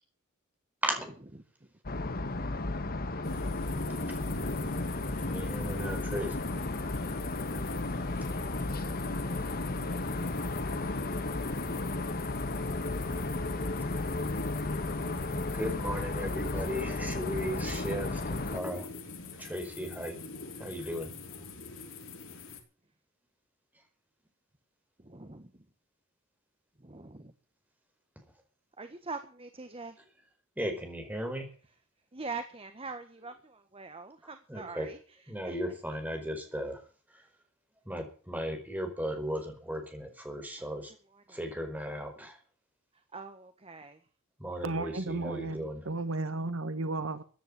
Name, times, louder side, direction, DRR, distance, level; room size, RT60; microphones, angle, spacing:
voice 1, 0.8-1.1 4.1-4.2 5.2-6.4 13.7-14.0 14.8-14.9 15.5-18.9 19.4-20.2 20.6-21.1 30.6-31.5 34.5-34.9 35.3-37.3 37.8-40.9 41.3-42.4 44.4-45.9, equal, 10° right, 4.8 m, -36 dB
sound 1, 1.8-18.6, left 2 dB, 45° left, 1.4 m, -34 dB
sound 2, 3.2-22.6, left 3 dB, 75° left, 4.6 m, -43 dB
sound 3, 8.6-20.1, equal, 15° left, 4.0 m, -56 dB
voice 2, 25.0-25.7 26.8-27.3 28.8-30.0 32.1-35.8 40.6-40.7 41.1-41.4 42.9-44.1, right 4 dB, 30° right, 1.5 m, -45 dB
voice 3, 44.6-47.2, right 2 dB, 75° right, 1.4 m, -34 dB
15.0 x 10.0 x 8.6 m
head